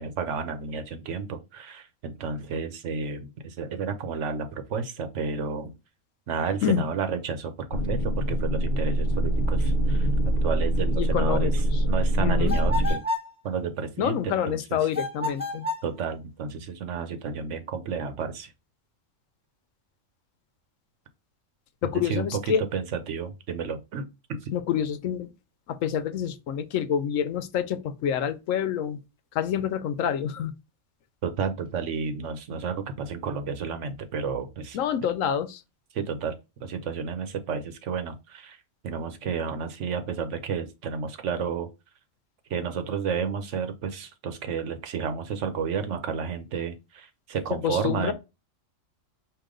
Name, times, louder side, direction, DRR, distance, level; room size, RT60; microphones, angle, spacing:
voice 1, 0.0-5.7 6.3-10.1 10.4-11.5 11.9-13.0 13.4-14.8 15.8-18.5 21.8-24.5 31.2-34.8 35.9-38.6 38.8-41.7 42.5-48.1, right 6 dB, 70° right, 1.1 m, -31 dB
sound 1, 7.7-12.9, right 1 dB, 50° left, 0.7 m, -24 dB
voice 2, 10.9-11.5 12.2-12.6 14.0-15.7 21.8-22.6 24.5-25.3 25.7-29.0 29.3-30.5 34.7-35.6 47.6-48.1, left 9 dB, 80° left, 1.0 m, -27 dB
sound 2, 12.5-13.3 14.9-15.9, left 2 dB, 5° right, 1.2 m, -30 dB
5.0 x 2.6 x 3.7 m
omnidirectional pair, 1.3 m